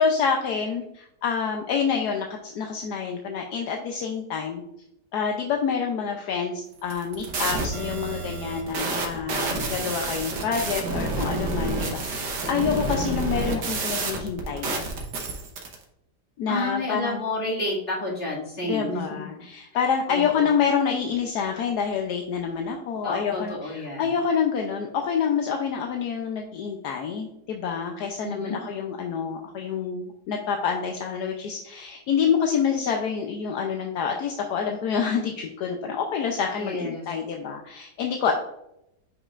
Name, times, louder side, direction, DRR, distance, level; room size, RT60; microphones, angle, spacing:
voice 1, 0.0-4.6 5.1-14.9 16.4-17.2 18.7-38.3, left 6 dB, 75° left, 2 dB, 1.2 m, -27 dB
sound 1, 6.8-15.8, right 3 dB, 85° right, 1.8 m, -29 dB
voice 2, 16.5-19.2 20.1-20.5 23.0-24.1 28.2-28.6 36.5-37.0, left 2 dB, 35° left, -6 dB, 2.4 m, -30 dB
9.6 x 5.2 x 2.5 m, 0.81 s
omnidirectional pair, 1.8 m